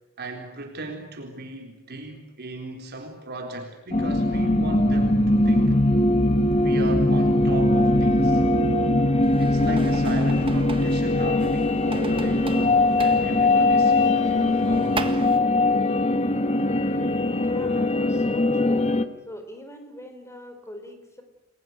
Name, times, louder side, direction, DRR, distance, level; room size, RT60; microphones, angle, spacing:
voice 1, 0.2-5.8 6.6-8.4 9.4-15.0, right 2 dB, 50° right, 3 dB, 4.0 m, -36 dB
sound 1, 3.9-19.0, left 2 dB, 30° left, 1.4 m, -21 dB
sound 2, 9.2-15.4, right 3 dB, 25° right, 1.7 m, -38 dB
voice 2, 17.4-19.0 19.2-21.2, equal, 15° left, 6 dB, 4.4 m, -41 dB
29.5 x 22.0 x 8.2 m, 0.90 s
head